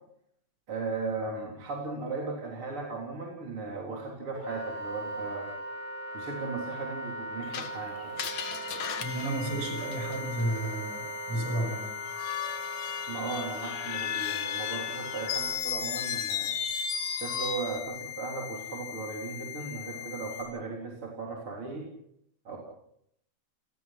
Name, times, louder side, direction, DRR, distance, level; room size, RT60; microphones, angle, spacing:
voice 1, 0.7-5.5 6.1-8.2 13.1-16.5 17.2-21.9 22.4-22.6, right 4 dB, 45° right, -1 dB, 4.4 m, -37 dB
Wind instrument woodwind instrument, 4.3-15.6, right 1 dB, 20° left, 2.8 m, -39 dB
Screech, 7.5-10.4 12.1-17.8, left 8 dB, 70° left, 2.7 m, -35 dB
sound 1, 9.0-20.4, left 13 dB, 20° right, 7.2 m, -41 dB
voice 2, 9.0-12.0, right 1 dB, 65° right, 3 dB, 8.6 m, -32 dB
29.0 x 20.0 x 6.0 m, 0.75 s
omnidirectional pair, 3.4 m